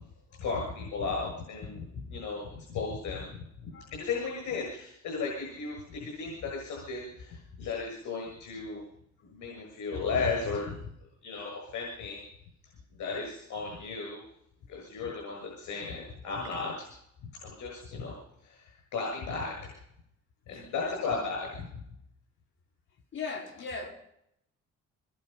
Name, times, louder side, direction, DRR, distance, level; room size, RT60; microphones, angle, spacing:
voice 1, 0.4-8.8 9.2-10.8 11.2-12.2 13.0-14.2 14.7-16.9 17.3-19.7 20.5-21.6, left 4 dB, 75° left, -1 dB, 7.2 m, -35 dB
voice 2, 20.5-21.1 23.1-23.9, left 4 dB, 40° left, -1 dB, 4.9 m, -40 dB
24.0 x 21.0 x 5.8 m, 0.78 s
cardioid pair, 165°, 30 cm